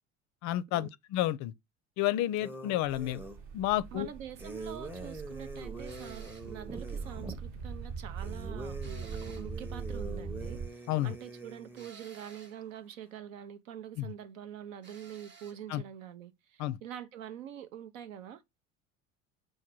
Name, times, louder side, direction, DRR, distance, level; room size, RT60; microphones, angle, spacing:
voice 1, 0.4-1.5 2.0-3.2 3.5-4.1 10.9-11.1 14.0-14.1 15.7-15.8 16.6-16.8, left 14 dB, 45° left, 0.4 m, -30 dB
sound 1, 2.4-3.4 4.4-7.4 8.2-11.9, right 2 dB, 5° right, 0.6 m, -44 dB
sound 2, 2.8-10.7, right 5 dB, 50° right, 1.0 m, -41 dB
voice 2, 3.9-18.6, right 10 dB, 75° right, 0.7 m, -45 dB
sound 3, 5.9-6.6 8.8-9.6 11.8-12.6 14.8-15.6, right 5 dB, 30° right, 0.9 m, -53 dB
4.6 x 2.2 x 4.5 m
hypercardioid pair, 65°, 40 cm